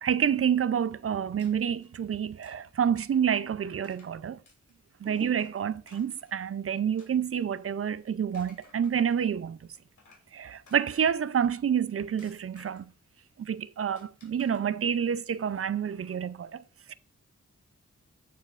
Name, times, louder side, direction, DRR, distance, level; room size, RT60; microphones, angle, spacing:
voice 1, 0.0-4.4 5.0-9.7 10.3-12.9 13.4-16.6 16.9-17.0, right 8 dB, 50° right, 0.5 m, -28 dB
sound 1, 1.4-1.9 2.4-2.6 2.9-3.2 3.8-4.1 4.5-4.9 5.4-6.4 7.0-7.7 8.2-9.3 9.7-10.3 10.7-11.4 12.2-13.0 14.0-14.6, left 3 dB, 90° left, 2.8 m, -58 dB
sound 2, 5.0-8.2 8.4-8.9, right 2 dB, 30° right, 1.5 m, -53 dB
9.0 x 7.0 x 2.4 m
cardioid pair, 65°, 29 cm